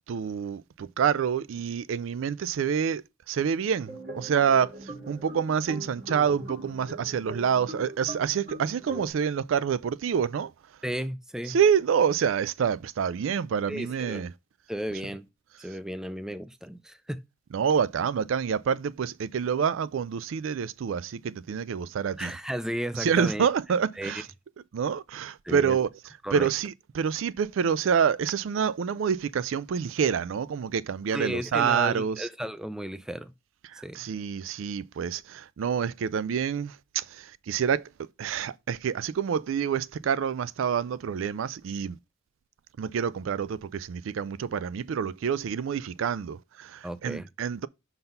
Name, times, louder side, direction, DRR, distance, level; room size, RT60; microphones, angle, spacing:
voice 1, 0.1-10.5 11.5-14.3 17.5-22.3 23.0-24.3 24.7-25.9 26.3-32.3 33.7-37.9 38.2-42.0 42.8-47.7, right 7 dB, 75° right, 0.4 m, -27 dB
sound 1, 3.8-9.1, right 1 dB, 45° right, 1.9 m, -41 dB
voice 2, 10.8-11.6 13.7-14.3 14.7-15.3 15.6-17.2 22.2-23.5 24.0-24.2 25.4-25.8 26.2-26.5 31.1-33.3 33.8-34.1 46.8-47.3, equal, 5° right, 0.3 m, -34 dB
5.7 x 3.9 x 5.3 m
head